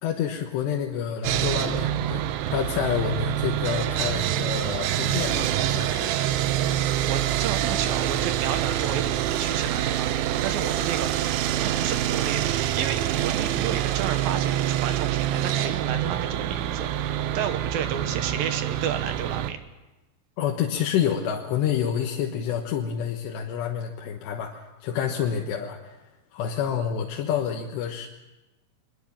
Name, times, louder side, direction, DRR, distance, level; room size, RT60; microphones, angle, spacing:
voice 1, 0.0-6.1 20.4-26.0 26.3-28.1, left 8 dB, 75° left, 1 dB, 3.4 m, -28 dB
Sawing, 1.2-19.5, right 12 dB, 90° right, 3.4 m, -26 dB
voice 2, 6.6-16.9 17.3-19.6, right 8 dB, 70° right, 8 dB, 2.5 m, -32 dB
23.5 x 22.0 x 7.4 m, 1.0 s
omnidirectional pair, 5.2 m